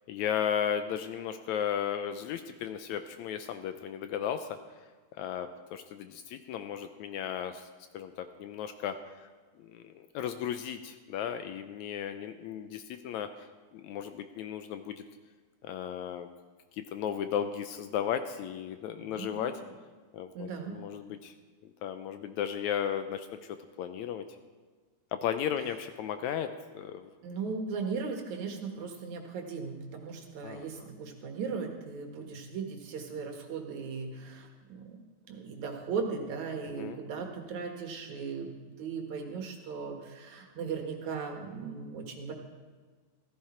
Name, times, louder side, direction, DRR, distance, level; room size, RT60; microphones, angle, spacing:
voice 1, 0.1-4.6 5.2-7.7 7.9-9.0 9.6-13.3 13.7-15.0 15.6-16.3 16.7-19.5 20.1-21.3 21.8-24.3 25.1-26.5 26.7-27.1 30.4-30.7 36.8-37.0, left 9 dB, 75° left, 9 dB, 1.8 m, -35 dB
voice 2, 19.0-19.5 20.3-20.8 27.2-42.3, right 5 dB, 65° right, 3 dB, 2.8 m, -37 dB
14.5 x 14.5 x 4.4 m, 1.4 s
omnidirectional pair, 3.6 m